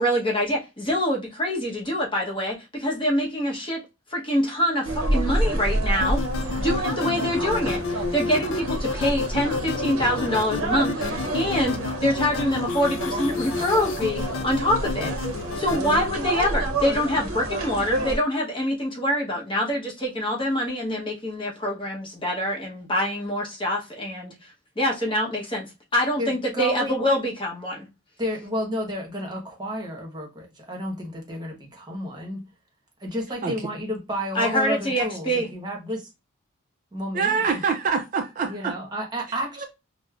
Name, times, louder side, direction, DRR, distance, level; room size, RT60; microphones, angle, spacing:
voice 1, 0.0-3.8 4.1-6.2 6.6-15.2 15.6-24.3 24.8-25.7 25.9-27.9 34.3-35.5, equal, 25° left, 0.9 m, -25 dB
sound 1, 4.8-18.2, right 1 dB, 80° right, 0.7 m, -29 dB
sound 2, 6.0-16.1, left 4 dB, 65° left, 0.3 m, -31 dB
voice 2, 26.2-27.0 28.2-32.4 33.0-36.1 36.9-37.6 38.5-39.6, equal, 20° right, 1.0 m, -31 dB
voice 3, 37.1-38.7, right 5 dB, 40° right, 0.4 m, -25 dB
5.0 x 2.0 x 2.4 m
head